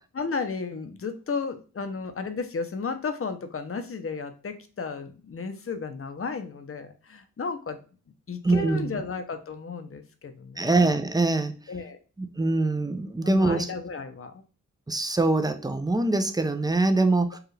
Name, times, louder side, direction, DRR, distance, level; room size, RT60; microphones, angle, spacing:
voice 1, 0.2-7.8 8.3-10.9 11.7-12.0 13.2-14.4 17.3-17.4, left 4 dB, 40° left, 0.7 m, -33 dB
voice 2, 8.4-9.0 10.6-11.5 12.2-13.7 14.9-17.4, right 2 dB, 10° right, 0.4 m, -23 dB
4.7 x 2.4 x 3.2 m
wide cardioid pair, 85°, 34 cm